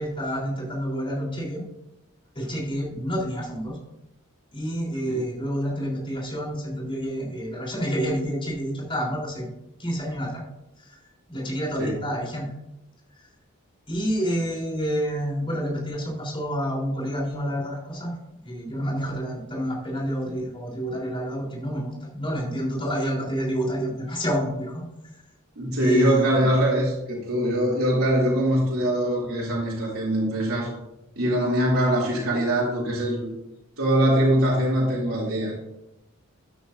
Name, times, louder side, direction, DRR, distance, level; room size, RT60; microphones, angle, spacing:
voice 1, 0.0-1.6 2.4-3.8 4.5-9.5 9.8-10.4 10.8-11.0 11.3-12.5 13.9-18.2 18.4-24.7 25.8-26.5, equal, 25° left, -4 dB, 3.9 m, -28 dB
voice 2, 25.6-30.7 31.1-33.3 33.8-35.5, right 1 dB, 80° right, -6 dB, 3.1 m, -22 dB
12.5 x 9.4 x 2.7 m, 0.92 s
head